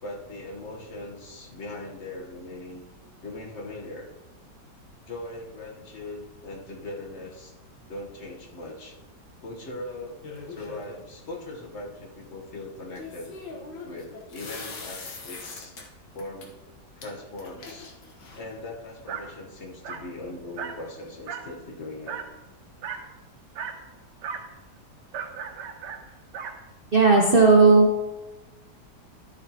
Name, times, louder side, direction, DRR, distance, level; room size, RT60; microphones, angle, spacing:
voice 1, 0.0-2.8 3.2-4.1 5.1-7.6 7.9-9.0 9.4-10.2 10.5-13.4 13.8-15.8 16.1-16.5 17.0-17.9 18.3-22.2, left 2 dB, 45° left, 0 dB, 1.4 m, -40 dB
sound 1, 10.2-11.0 13.0-15.8 16.2-16.5 17.0-17.1 17.4-18.6, left 4 dB, 85° left, 1.9 m, -41 dB
Dog, 19.1-19.3 19.8-20.1 20.6-20.8 21.3-21.6 22.1-22.3 22.8-23.1 23.6-23.8 24.2-24.5 25.1-26.6, right 6 dB, 80° right, 1.4 m, -36 dB
voice 2, 26.9-27.9, right 3 dB, 45° right, -1 dB, 0.8 m, -15 dB
11.5 x 7.0 x 2.9 m, 1.1 s
omnidirectional pair, 1.9 m